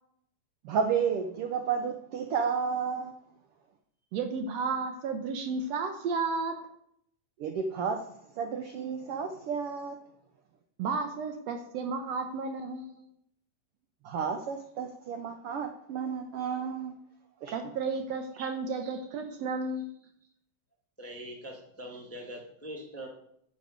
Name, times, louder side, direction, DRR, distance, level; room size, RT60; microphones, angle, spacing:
voice 1, 0.6-3.1 7.4-10.0 14.0-16.9 17.4-17.5, right 6 dB, 85° right, 6 dB, 1.2 m, -32 dB
voice 2, 4.1-6.6 10.8-13.0 17.5-19.9, right 4 dB, 70° right, 6 dB, 1.8 m, -33 dB
voice 3, 21.0-23.1, right 1 dB, 10° left, 1 dB, 0.9 m, -42 dB
9.5 x 7.0 x 6.5 m, 0.71 s
omnidirectional pair, 3.5 m